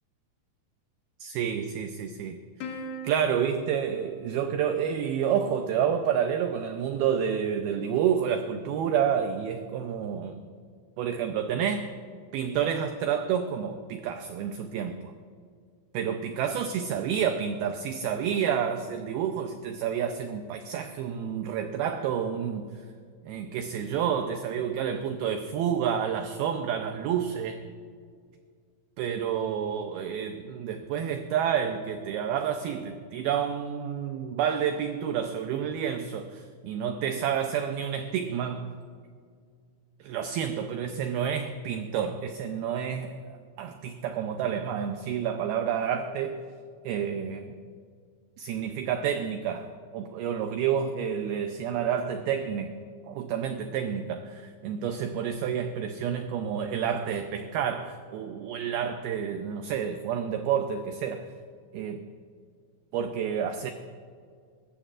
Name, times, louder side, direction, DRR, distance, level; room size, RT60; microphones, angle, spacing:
voice 1, 1.2-2.4 2.6-2.8 3.0-10.5 11.0-11.9 12.3-15.1 15.9-22.7 23.2-27.6 29.0-38.8 40.0-43.2 43.6-46.4 46.8-47.5 48.4-52.7 53.1-61.3 61.7-62.0 62.9-63.7, right 8 dB, 85° right, 6 dB, 2.2 m, -29 dB
Plucked string instrument, 2.6-5.3, equal, 65° left, 3.1 m, -42 dB
21.0 x 14.5 x 2.5 m, 2.1 s
omnidirectional pair, 5.1 m